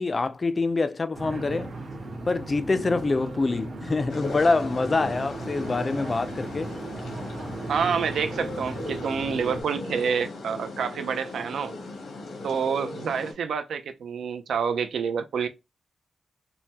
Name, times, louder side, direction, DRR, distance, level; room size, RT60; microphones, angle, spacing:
voice 1, 0.0-1.7 2.3-6.8, left 3 dB, 35° left, 0.3 m, -25 dB
sound 1, 1.1-9.6, right 2 dB, 55° right, 0.9 m, -36 dB
sound 2, 4.1-13.3, left 3 dB, 90° left, 0.8 m, -38 dB
voice 2, 7.7-11.7 12.4-15.5, right 6 dB, 90° right, 0.4 m, -28 dB
3.3 x 2.1 x 2.8 m
wide cardioid pair, 110°, 0 cm